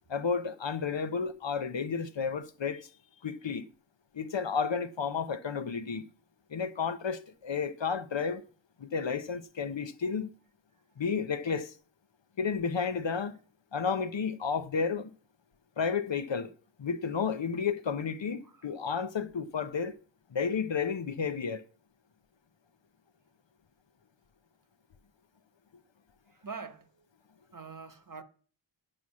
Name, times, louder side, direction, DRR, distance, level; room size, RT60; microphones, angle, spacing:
voice 1, 0.1-2.9 3.2-3.7 4.1-6.1 6.5-8.4 8.8-10.3 11.0-11.7 12.4-13.4 13.7-15.1 15.8-16.5 16.8-20.0 20.3-21.6, left 5 dB, 70° left, 0.8 m, -32 dB
voice 2, 26.3-26.9 27.5-28.2, right 5 dB, 45° right, 1.1 m, -44 dB
8.8 x 6.3 x 8.4 m
wide cardioid pair, 50°, 46 cm